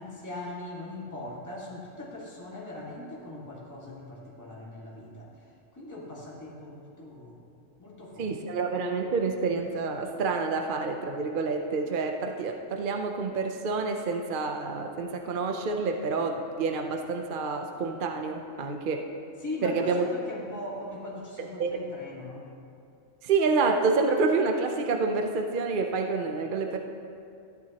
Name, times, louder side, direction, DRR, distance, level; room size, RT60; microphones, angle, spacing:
voice 1, 0.0-5.5 5.7-7.4 7.8-8.5 19.4-22.4, left 1 dB, 15° left, -5 dB, 1.7 m, -40 dB
voice 2, 8.2-19.0 19.6-20.1 21.4-21.8 23.2-26.8, right 4 dB, 50° right, 4 dB, 0.7 m, -28 dB
14.5 x 10.5 x 2.9 m, 2.4 s
omnidirectional pair, 1.3 m